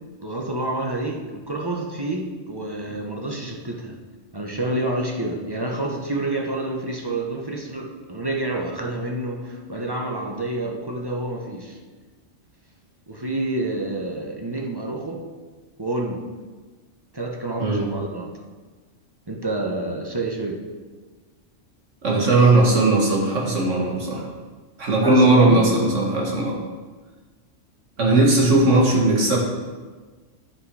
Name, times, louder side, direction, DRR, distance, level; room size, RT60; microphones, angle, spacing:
voice 1, 0.2-4.0 4.3-11.8 13.1-15.3 15.8-16.2 17.1-18.3 19.3-20.6 25.0-25.7, right 2 dB, 20° right, 0 dB, 1.0 m, -28 dB
voice 2, 17.6-17.9 22.0-24.3 24.8-26.6 28.0-29.4, right 2 dB, 85° right, -2 dB, 2.2 m, -18 dB
10.0 x 6.1 x 4.8 m, 1.3 s
omnidirectional pair, 1.2 m